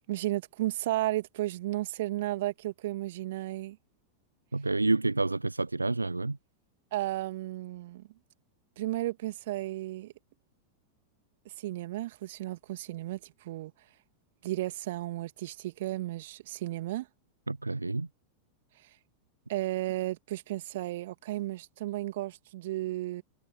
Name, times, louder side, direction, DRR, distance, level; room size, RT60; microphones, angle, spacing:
voice 1, 0.1-3.8 6.9-8.1 8.8-10.1 11.4-13.7 14.4-17.1 18.8-18.9 19.5-23.2, right 16 dB, 55° right, 2.8 m, -34 dB
voice 2, 4.5-6.4 17.5-18.1, right 2 dB, 80° right, 0.7 m, -29 dB
figure-of-eight pair, 90°, 0 cm